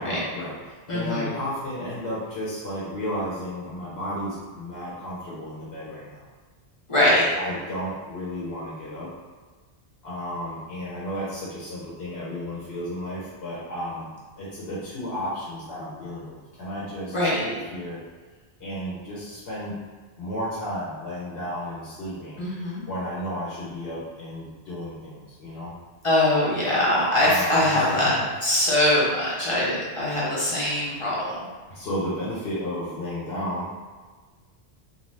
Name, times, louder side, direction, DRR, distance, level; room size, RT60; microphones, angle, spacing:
voice 1, 0.0-6.3 7.0-9.1 10.0-14.1 14.4-17.2 17.4-18.0 18.6-19.7 20.2-22.4 22.9-25.7 27.2-28.5 31.7-33.7, equal, 70° left, -7 dB, 0.9 m, -33 dB
voice 2, 0.9-1.2 6.9-7.2 17.1-17.4 22.4-22.8 26.0-28.1 28.4-31.3, left 1 dB, 35° left, -7 dB, 0.6 m, -22 dB
2.5 x 2.3 x 3.1 m, 1.4 s
omnidirectional pair, 1.1 m